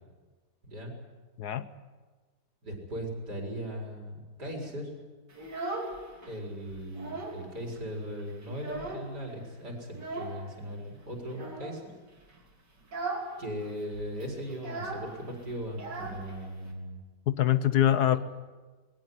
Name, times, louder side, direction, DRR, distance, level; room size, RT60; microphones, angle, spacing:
voice 1, 0.6-0.9 2.6-4.9 6.3-11.8 13.4-17.0 18.1-18.2, equal, 70° right, 0 dB, 5.6 m, -38 dB
Child speech kid speaking, 5.3-6.3 6.7-7.5 7.8-7.9 8.2-9.3 9.9-10.4 11.3-11.8 12.2-12.4 12.8-13.3 13.6-13.7 13.9-16.7, right 3 dB, 85° right, 4.2 m, -38 dB
voice 2, 17.3-18.2, left 11 dB, 70° left, 13 dB, 1.4 m, -24 dB
21.5 x 17.5 x 9.7 m, 1.3 s
omnidirectional pair, 1.8 m